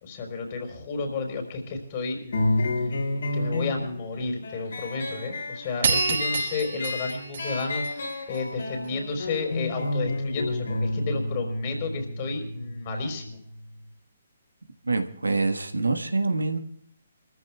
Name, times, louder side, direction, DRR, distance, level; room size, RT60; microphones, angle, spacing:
voice 1, 0.0-2.7 3.3-13.4, left 3 dB, 35° left, 2 dB, 4.1 m, -32 dB
sound 1, 2.3-13.4, left 2 dB, 65° left, 5.6 m, -30 dB
sound 2, 5.8-8.4, right 5 dB, 60° right, 4.8 m, -28 dB
voice 2, 14.8-16.6, right 3 dB, 85° right, 6 dB, 1.4 m, -25 dB
28.5 x 14.5 x 2.3 m, 0.65 s
figure-of-eight pair, 135°, 0 cm